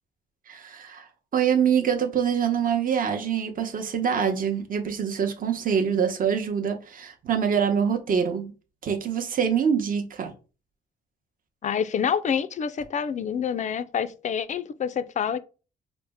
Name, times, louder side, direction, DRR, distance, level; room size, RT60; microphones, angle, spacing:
voice 1, 0.5-1.1 1.3-8.5 8.8-10.3, right 7 dB, 45° right, 0.8 m, -25 dB
voice 2, 11.6-15.4, left 7 dB, 40° left, 0.4 m, -27 dB
4.2 x 2.1 x 3.4 m
cardioid pair, 90°, 20 cm